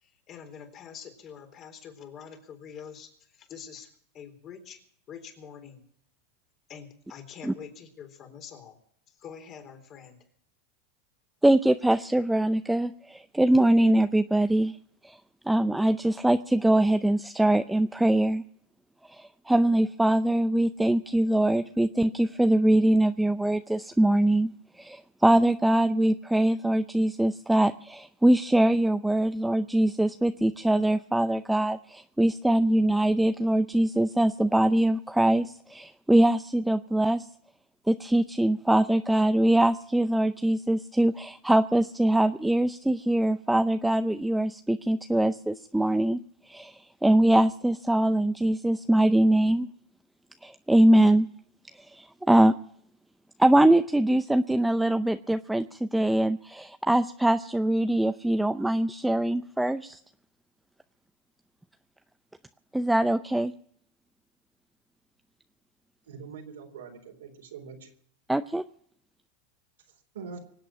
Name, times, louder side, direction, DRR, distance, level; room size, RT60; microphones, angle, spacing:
voice 1, 0.0-4.8 5.1-5.8 6.7-8.8 9.1-10.2, left 7 dB, 40° left, 6 dB, 3.9 m, -45 dB
voice 2, 11.4-14.8 15.0-15.2 15.5-18.4 19.1-24.5 24.8-37.3 37.9-46.2 46.4-49.7 50.4-51.3 51.8-52.5 53.4-60.0 62.7-63.5 68.3-68.6, right 1 dB, 5° right, 9 dB, 0.6 m, -23 dB
voice 3, 66.1-67.9 70.1-70.4, right 5 dB, 90° right, 2 dB, 3.9 m, -43 dB
24.5 x 8.5 x 6.1 m, 0.64 s
hypercardioid pair, 115°, 0 cm